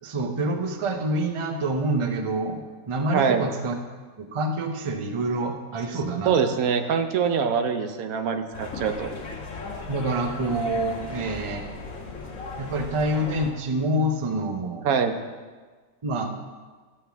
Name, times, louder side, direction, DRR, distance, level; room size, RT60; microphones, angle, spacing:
voice 1, 0.0-3.8 4.2-6.4 9.9-11.6 12.6-14.9 16.0-16.3, right 1 dB, 35° right, 5 dB, 0.5 m, -27 dB
voice 2, 3.1-3.5 6.3-9.1 14.8-15.2, right 6 dB, 85° right, 7 dB, 1.2 m, -24 dB
sound 1, 8.5-13.5, left 3 dB, 70° left, 1.6 m, -37 dB
13.0 x 7.5 x 3.4 m, 1.4 s
omnidirectional pair, 1.5 m